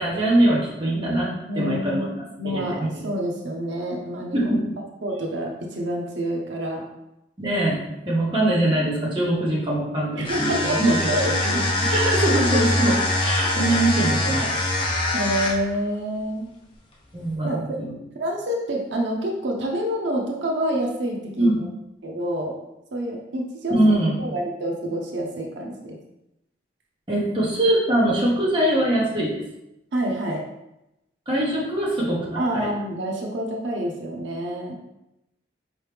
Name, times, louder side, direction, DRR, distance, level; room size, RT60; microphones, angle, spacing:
voice 1, 0.0-2.1 2.4-2.9 4.3-4.7 7.4-14.5 17.1-17.9 21.4-21.6 23.7-24.2 27.1-29.4 31.3-32.7, right 1 dB, 25° right, -5 dB, 1.1 m, -23 dB
voice 2, 1.5-4.5 5.0-6.9 8.3-8.4 10.1-11.6 15.1-16.5 17.4-17.6 18.1-21.7 22.0-22.6 22.9-26.0 29.9-30.4 32.4-34.8, right 1 dB, 85° right, 0 dB, 0.7 m, -28 dB
sound 1, 10.2-15.7, left 1 dB, 25° left, 0.6 m, -23 dB
4.7 x 3.1 x 3.4 m, 0.89 s
head